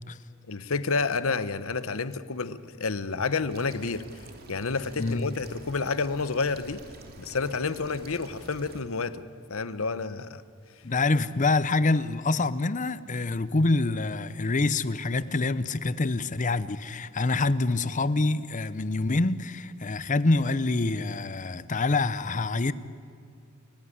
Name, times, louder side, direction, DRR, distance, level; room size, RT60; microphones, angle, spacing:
voice 1, 0.5-4.0 4.5-6.8 7.2-9.2 9.5-10.4, left 4 dB, 75° left, 1.0 m, -29 dB
sound 1, 3.5-8.8, right 2 dB, 45° right, 2.7 m, -47 dB
voice 2, 5.0-5.4 10.8-22.7, left 3 dB, 35° left, 0.7 m, -26 dB
30.0 x 15.0 x 10.0 m
head